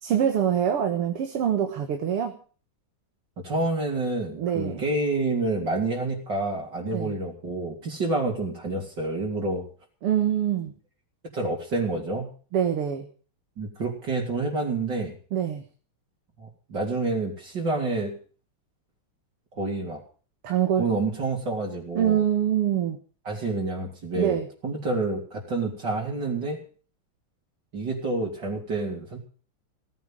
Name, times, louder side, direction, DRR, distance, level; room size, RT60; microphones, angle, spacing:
voice 1, 0.0-2.4 4.4-4.8 6.9-7.1 10.0-10.7 12.5-13.1 15.3-15.6 20.4-20.9 22.0-23.0 24.2-24.5, right 9 dB, 90° right, 5 dB, 2.5 m, -24 dB
voice 2, 3.4-9.7 11.3-12.3 13.6-15.1 16.4-18.1 19.5-20.0 20.8-22.2 23.3-26.6 27.7-29.2, right 2 dB, 50° right, -1 dB, 4.1 m, -28 dB
17.5 x 9.5 x 7.5 m, 0.41 s
omnidirectional pair, 2.4 m